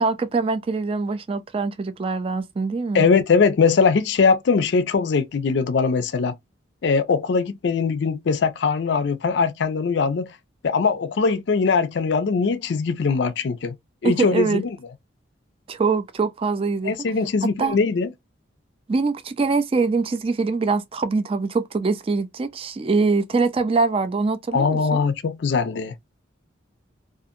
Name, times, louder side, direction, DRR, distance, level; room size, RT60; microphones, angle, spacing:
voice 1, 0.0-3.1 14.0-14.6 15.7-16.9 17.6-17.8 18.9-25.0, right 4 dB, 30° right, 0.3 m, -23 dB
voice 2, 2.9-6.3 6.8-10.3 10.6-13.7 14.0-14.7 16.8-18.1 24.5-25.9, left 5 dB, 65° left, 0.4 m, -21 dB
2.5 x 2.5 x 2.6 m
head